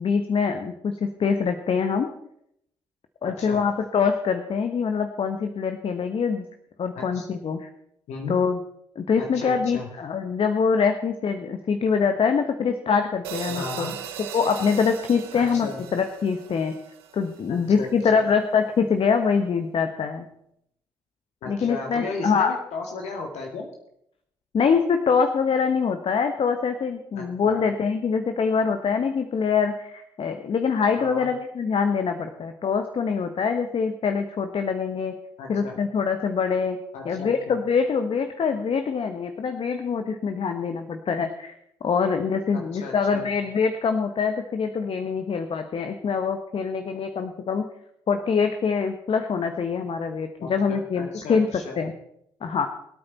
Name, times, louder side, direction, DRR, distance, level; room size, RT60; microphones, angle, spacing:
voice 1, 0.0-2.1 3.2-6.5 6.8-7.7 8.3-8.6 8.9-13.8 14.3-16.7 17.1-20.3 21.5-22.6 24.5-35.1 35.5-36.8 37.0-41.5 41.8-47.6 48.1-51.5 51.8-51.9 52.4-52.7, left 5 dB, 50° left, 7 dB, 1.3 m, -24 dB
voice 2, 3.2-3.6 6.9-7.3 8.1-8.4 9.2-9.9 13.5-14.0 15.3-15.8 17.5-17.9 21.4-23.7 27.1-27.6 31.0-31.3 35.4-35.7 36.9-37.6 42.5-43.3 50.4-51.8, left 3 dB, 65° left, 1 dB, 2.1 m, -35 dB
sound 1, 13.2-17.6, right 9 dB, 85° right, 1.0 m, -38 dB
22.0 x 8.8 x 4.2 m, 0.74 s
hypercardioid pair, 45°, 12 cm